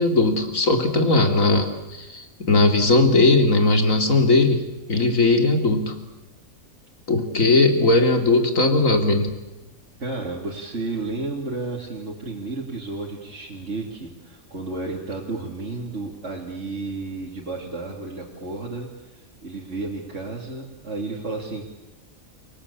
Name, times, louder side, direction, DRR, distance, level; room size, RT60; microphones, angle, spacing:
voice 1, 0.0-4.6 4.9-5.9 7.1-9.3, left 2 dB, 75° left, 5 dB, 3.4 m, -18 dB
voice 2, 10.0-21.6, right 3 dB, 60° right, -3 dB, 3.4 m, -32 dB
30.0 x 19.0 x 8.6 m, 1.0 s
omnidirectional pair, 1.4 m